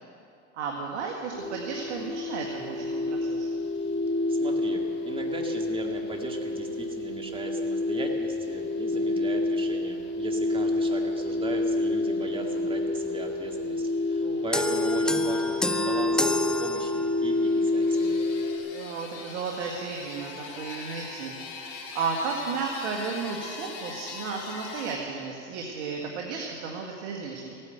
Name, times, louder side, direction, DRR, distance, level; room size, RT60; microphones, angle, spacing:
voice 1, 0.5-3.5 14.2-14.5 18.6-27.6, right 5 dB, 70° right, 0 dB, 1.9 m, -34 dB
sound 1, 1.3-18.6, left 2 dB, 35° left, 4.8 m, -28 dB
voice 2, 4.3-18.2, right 2 dB, 15° right, 2 dB, 2.1 m, -38 dB
sound 2, 14.5-17.4, left 1 dB, ahead, 0.4 m, -29 dB
sound 3, 17.1-25.0, left 5 dB, 70° left, 3.0 m, -41 dB
16.0 x 9.6 x 7.9 m, 2.6 s
hypercardioid pair, 100°, 36 cm